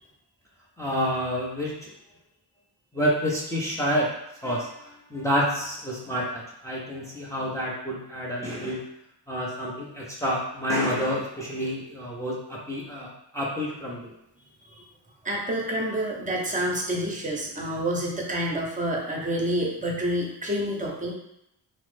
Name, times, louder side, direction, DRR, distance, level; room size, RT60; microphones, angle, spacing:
voice 1, 0.8-1.9 2.9-4.1 4.4-8.8 9.3-14.1, equal, 5° left, -5 dB, 0.7 m, -28 dB
voice 2, 15.2-21.1, equal, 20° right, -1 dB, 0.8 m, -28 dB
3.0 x 2.1 x 3.3 m, 0.80 s
cardioid pair, 55°, 43 cm